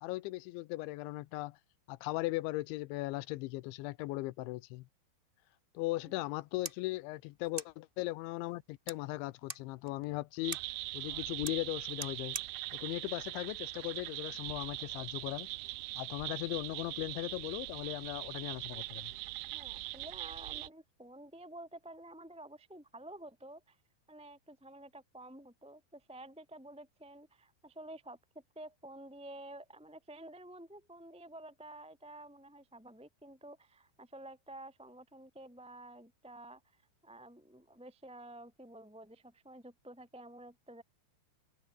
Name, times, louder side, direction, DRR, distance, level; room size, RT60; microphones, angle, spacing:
voice 1, 0.0-1.6 1.9-4.9 5.7-10.6 10.9-12.4 12.7-15.5 16.0-19.1, left 20 dB, 85° left, 3.0 m, -38 dB
sound 1, 6.2-14.2, right 3 dB, 45° right, 0.6 m, -49 dB
sound 2, 10.4-20.7, right 19 dB, 85° right, 2.2 m, -42 dB
voice 2, 19.5-23.8 24.1-28.2 28.5-36.6 37.0-40.8, right 1 dB, ahead, 2.2 m, -51 dB
open air
omnidirectional pair, 5.3 m